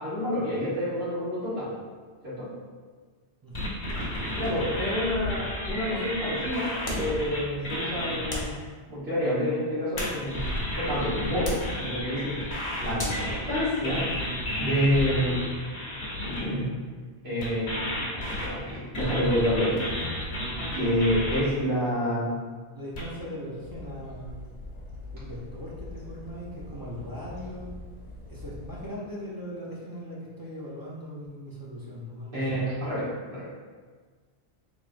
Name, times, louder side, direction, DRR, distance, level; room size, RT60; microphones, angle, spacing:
voice 1, 0.0-1.7 2.2-2.5 4.4-8.6 8.9-10.5 10.8-12.4 12.8-14.0 14.6-15.4 16.2-16.7 17.2-17.8 18.1-19.9 20.7-22.3 32.3-33.6, equal, 70° right, -10 dB, 1.7 m, -28 dB
voice 2, 3.4-3.7 4.1-4.5 21.8-21.9 22.7-24.4 25.1-27.7 28.3-32.4, equal, 30° right, -6 dB, 0.4 m, -39 dB
sound 1, 3.5-8.4 10.0-16.4 17.4-21.4 23.0-23.1, left 1 dB, 65° left, 1.2 m, -32 dB
sound 2, 6.8-7.2 8.3-8.6 9.7-10.6 11.4-11.7 13.0-13.3, left 1 dB, 25° left, 0.5 m, -35 dB
sound 3, 23.6-28.9, left 2 dB, 90° left, 1.0 m, -43 dB
3.5 x 3.5 x 2.5 m, 1.5 s
omnidirectional pair, 1.1 m